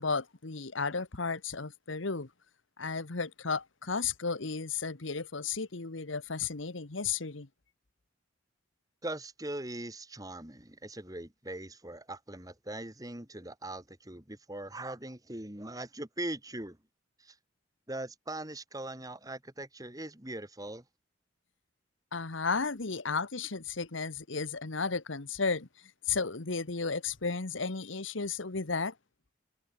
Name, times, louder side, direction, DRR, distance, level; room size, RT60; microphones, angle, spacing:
voice 1, 0.0-2.3 2.8-7.5 22.1-25.7 26.1-28.9, left 4 dB, 75° left, 1.4 m, -33 dB
voice 2, 9.0-16.8 17.2-17.4 17.9-20.8, right 1 dB, 20° right, 2.5 m, -41 dB
head